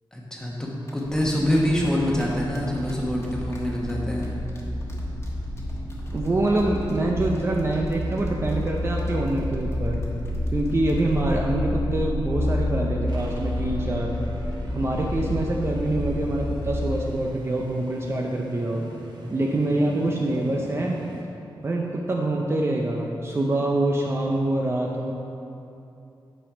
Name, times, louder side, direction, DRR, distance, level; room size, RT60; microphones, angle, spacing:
voice 1, 0.1-4.2, equal, 10° left, -3 dB, 1.2 m, -25 dB
sound 1, 0.9-1.6 1.9-11.3, left 1 dB, 30° left, 1.3 m, -51 dB
sound 2, 1.1-16.9, left 1 dB, 75° left, 1.2 m, -30 dB
voice 2, 6.1-10.0 10.5-14.1 14.7-18.9 19.3-21.0 21.6-25.1, right 2 dB, 30° right, -1 dB, 0.5 m, -25 dB
sound 3, 13.1-21.2, right 1 dB, 60° right, 1.0 m, -42 dB
8.5 x 5.2 x 5.0 m, 2.8 s
wide cardioid pair, 155°, 9 cm